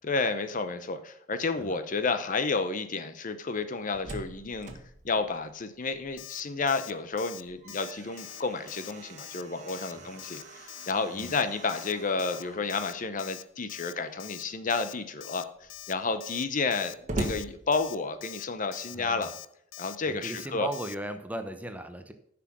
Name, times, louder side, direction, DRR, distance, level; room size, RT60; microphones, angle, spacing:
voice 1, 0.0-4.7 5.0-15.5 15.9-19.3 19.8-20.7, left 4 dB, 40° left, 10 dB, 0.8 m, -31 dB
Slam, 3.6-6.4 6.8-6.9 7.3-13.0 13.9-14.4 14.9-15.0 15.3-18.4, right 1 dB, 40° right, 1.6 m, -42 dB
Alarm, 6.2-6.4 6.7-6.9 7.2-7.4 7.7-8.4 8.7-8.9 9.2-9.4 9.7-9.9 10.2-10.4 10.7-10.9 11.2-11.4 11.7-11.9 12.2-12.4 12.7-12.9 13.2-13.4 13.7-13.9 14.2-14.4 14.7-14.9 15.2-15.4 15.7-15.9 16.2-16.4 16.7-16.9 17.2-17.4 17.7-17.9 18.2-18.4 18.7-18.9 19.2-19.4 19.7-20.0 20.2-20.5 20.7-20.9, left 15 dB, 85° left, 0.6 m, -44 dB
voice 2, 18.9-19.3 20.1-22.1, right 1 dB, 10° right, 7 dB, 0.8 m, -37 dB
9.7 x 6.0 x 6.1 m, 0.69 s
head